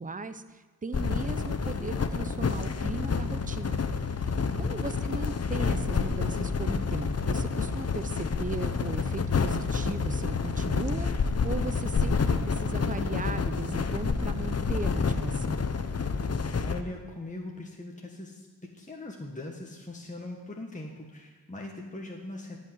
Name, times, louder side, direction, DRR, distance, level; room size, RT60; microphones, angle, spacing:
voice 1, 0.0-3.8 4.1-4.3 4.6-15.6, right 3 dB, 20° right, 11 dB, 0.8 m, -37 dB
sound 1, 0.9-16.8, left 5 dB, 40° left, 0.9 m, -29 dB
voice 2, 16.6-22.6, left 2 dB, 20° left, -1 dB, 1.7 m, -41 dB
14.5 x 5.7 x 9.7 m, 1.2 s
cardioid pair, 70°, 37 cm